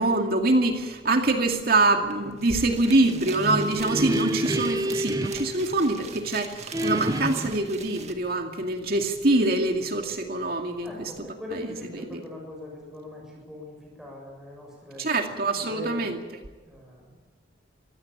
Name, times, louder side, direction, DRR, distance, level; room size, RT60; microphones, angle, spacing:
voice 1, 0.0-11.1 11.5-11.6 11.9-12.2 15.0-16.2, right 2 dB, 55° right, 4 dB, 2.3 m, -24 dB
sound 1, 2.1-2.2 2.4-8.1, right 4 dB, 35° right, 2.0 m, -41 dB
sound 2, 3.2-6.3 6.7-7.7, equal, 20° right, 0.8 m, -29 dB
voice 2, 10.8-15.1 15.6-16.1 16.7-17.2, left 2 dB, 5° right, -1 dB, 7.3 m, -40 dB
24.5 x 16.5 x 8.7 m, 1.4 s
head